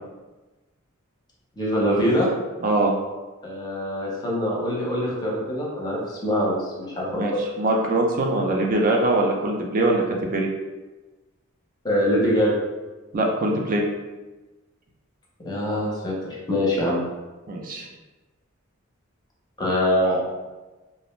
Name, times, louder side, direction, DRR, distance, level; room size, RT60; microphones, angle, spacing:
voice 1, 1.6-2.3 3.4-7.4 11.8-12.5 15.4-17.0 19.6-20.2, equal, 20° left, -4 dB, 0.6 m, -24 dB
voice 2, 2.6-2.9 7.1-10.0 10.3-10.5 13.1-13.8 17.5-17.9, right 2 dB, 40° right, 0 dB, 0.4 m, -22 dB
2.4 x 2.1 x 3.0 m, 1.2 s
head